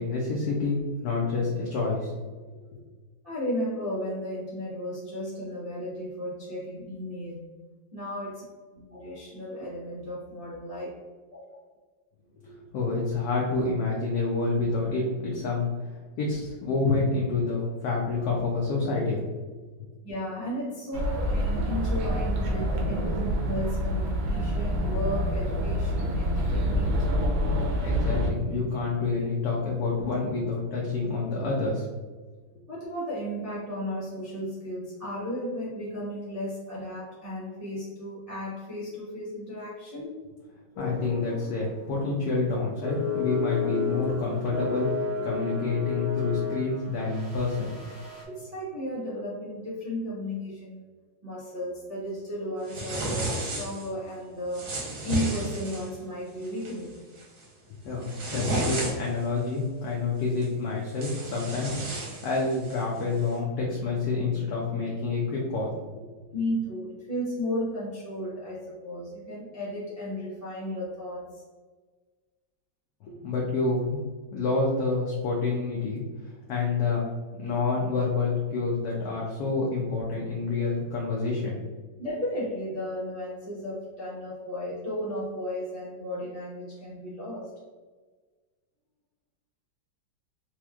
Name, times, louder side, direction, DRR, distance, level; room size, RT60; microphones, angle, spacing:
voice 1, 0.0-2.2 2.7-2.8 12.4-15.9 16.2-19.3 27.8-31.9 40.8-47.8 57.8-66.0 73.0-74.1 74.3-77.1 77.4-81.6, left 3 dB, 65° left, -3 dB, 1.0 m, -28 dB
voice 2, 3.2-7.5 7.9-8.4 8.7-10.9 11.3-11.6 20.0-27.1 32.7-40.2 48.2-50.9 51.2-54.7 55.0-57.0 66.3-71.4 82.0-87.5, equal, 40° right, -9 dB, 0.5 m, -34 dB
sound 1, 20.9-28.3, equal, 85° right, 1.5 m, -27 dB
sound 2, 40.8-41.6 41.8-42.1 42.8-48.2, left 4 dB, 40° left, 0.5 m, -32 dB
sound 3, 52.7-53.9 54.5-55.9 56.4-56.7 57.2-57.4 57.8-59.2 60.4-60.5 60.9-62.8, right 2 dB, 55° right, 1.1 m, -32 dB
4.1 x 3.0 x 2.3 m, 1.4 s
omnidirectional pair, 2.1 m